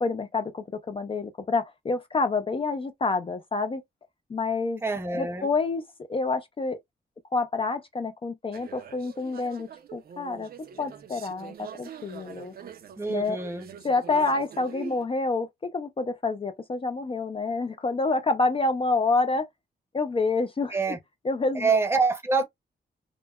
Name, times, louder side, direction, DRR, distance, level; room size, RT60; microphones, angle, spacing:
voice 1, 0.0-3.8 4.3-4.8 5.1-5.8 6.1-6.8 7.3-10.5 10.8-12.5 13.1-13.4 13.8-19.5 19.9-20.8 21.2-21.8, left 3 dB, 30° left, 0.4 m, -28 dB
voice 2, 4.8-5.5 13.0-13.7 20.7-21.0 21.5-22.4, right 4 dB, 15° right, 0.7 m, -26 dB
sound 1, 8.5-15.1, right 7 dB, 55° right, 0.5 m, -44 dB
3.6 x 2.0 x 2.3 m
wide cardioid pair, 130°, 18 cm